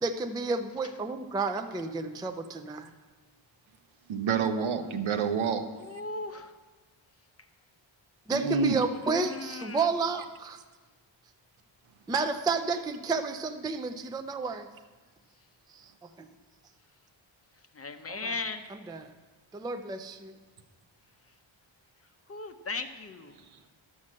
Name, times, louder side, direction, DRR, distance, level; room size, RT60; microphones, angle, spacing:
voice 1, 0.0-2.9 8.3-10.6 12.1-14.7 15.7-15.8 16.2-16.3 18.9-19.0 19.5-20.3, right 4 dB, 10° right, 7 dB, 0.4 m, -31 dB
voice 2, 4.1-5.7 8.3-8.8, right 5 dB, 75° right, 8 dB, 1.0 m, -28 dB
voice 3, 5.7-6.6 7.4-7.5 9.0-9.9 15.4-15.5 17.5-18.7 21.3-21.4 22.0-23.4, left 3 dB, 30° left, 8 dB, 0.6 m, -38 dB
11.5 x 6.3 x 7.4 m, 1.4 s
wide cardioid pair, 150°, 48 cm